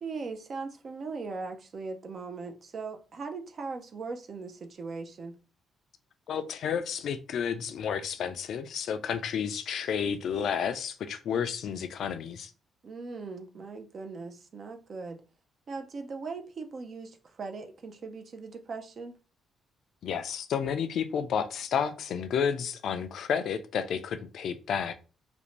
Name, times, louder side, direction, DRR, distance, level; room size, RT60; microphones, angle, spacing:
voice 1, 0.0-5.4 12.8-15.2 15.7-19.2, right 4 dB, 50° right, 0.5 m, -39 dB
voice 2, 6.3-12.5 20.0-24.9, left 7 dB, 70° left, 0.3 m, -31 dB
2.5 x 2.1 x 3.0 m
cardioid pair, 90°, 0 cm